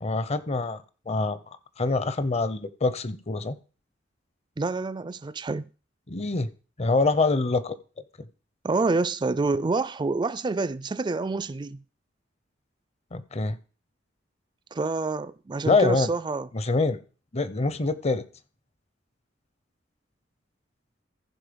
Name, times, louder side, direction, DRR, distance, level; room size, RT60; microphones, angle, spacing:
voice 1, 0.0-1.4 1.8-3.5 6.1-6.5 6.8-7.8 13.1-13.6 15.7-16.1 16.5-17.0 17.3-18.2, left 3 dB, 35° left, 0.7 m, -25 dB
voice 2, 4.6-5.7 8.6-11.8 14.7-16.5, right 3 dB, 25° right, 0.4 m, -27 dB
15.0 x 5.1 x 5.1 m
head